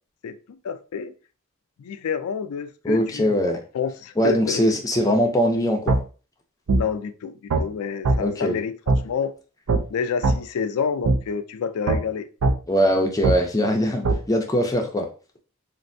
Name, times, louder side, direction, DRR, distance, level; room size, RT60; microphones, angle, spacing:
voice 1, 0.2-1.1 1.8-3.4 3.7-4.6 6.7-9.3 9.9-12.3, left 6 dB, 85° left, 11 dB, 0.4 m, -28 dB
voice 2, 2.8-3.6 4.2-6.0 8.2-8.6 12.7-15.1, equal, 15° left, 3 dB, 0.5 m, -21 dB
sound 1, 5.9-6.0 6.7-6.8 7.5-7.6 8.0-8.2 8.9-9.0 9.7-9.8 10.2-10.4 11.0-11.2 11.9-12.0 12.4-12.6 13.2-13.4 14.0-14.2, right 3 dB, 75° right, 0.4 m, -19 dB
3.2 x 2.5 x 2.6 m, 0.36 s
head